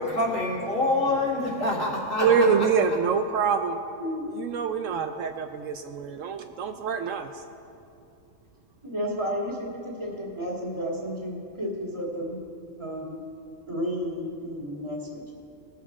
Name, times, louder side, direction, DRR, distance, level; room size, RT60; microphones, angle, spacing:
voice 1, 0.0-3.0, left 2 dB, 65° left, -3 dB, 2.3 m, -27 dB
voice 2, 2.2-3.8 4.3-7.4, right 6 dB, 70° right, 7 dB, 0.9 m, -25 dB
voice 3, 4.0-4.3 8.8-12.4 12.8-13.2 13.7-15.2, equal, 20° right, -4 dB, 2.0 m, -32 dB
19.5 x 7.2 x 3.6 m, 2.5 s
omnidirectional pair, 1.5 m